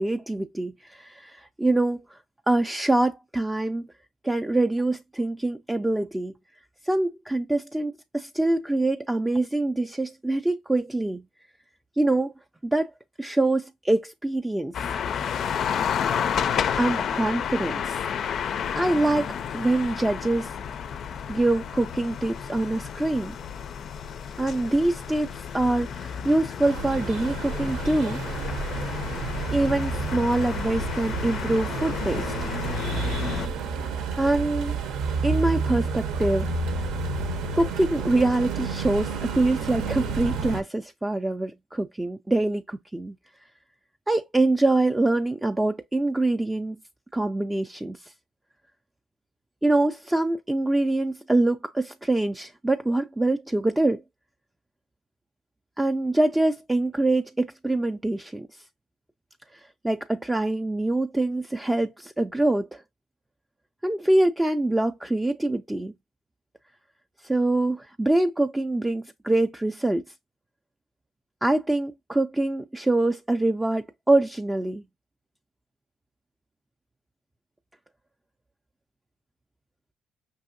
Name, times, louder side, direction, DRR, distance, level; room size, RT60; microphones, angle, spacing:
voice 1, 0.0-2.2 2.5-3.9 4.2-6.3 6.8-11.2 12.0-12.3 12.6-12.9 13.2-14.9 16.8-18.0 18.8-20.5 21.3-23.4 24.4-28.2 29.5-32.3 34.2-34.7 35.2-36.5 37.5-43.2 44.1-46.8 47.1-48.1 49.6-54.0 55.8-58.5 59.5-62.8 63.8-65.9 67.2-70.0 71.4-74.8, right 2 dB, 10° right, 0.4 m, -24 dB
sound 1, 14.7-33.5, left 7 dB, 55° left, 0.4 m, -31 dB
sound 2, 26.6-40.6, right 4 dB, 80° right, 0.8 m, -30 dB
5.5 x 2.7 x 2.5 m
cardioid pair, 85°, 0 cm